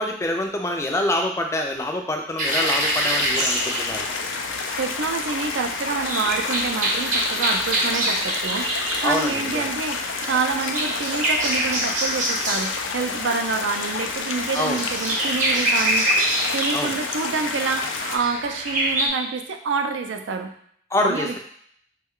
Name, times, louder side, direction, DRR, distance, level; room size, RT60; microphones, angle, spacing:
voice 1, 0.0-4.1 9.0-9.7 14.5-14.8 16.7-16.9 20.9-21.3, left 1 dB, 15° left, 2 dB, 0.3 m, -26 dB
sound 1, 2.4-18.2, left 5 dB, 90° left, 0.4 m, -30 dB
sound 2, 2.4-19.1, right 1 dB, 40° right, 0.7 m, -26 dB
voice 2, 4.8-16.1 16.5-20.5 21.0-21.4, right 4 dB, 80° right, 5 dB, 0.4 m, -27 dB
3.1 x 2.2 x 3.6 m, 0.63 s
head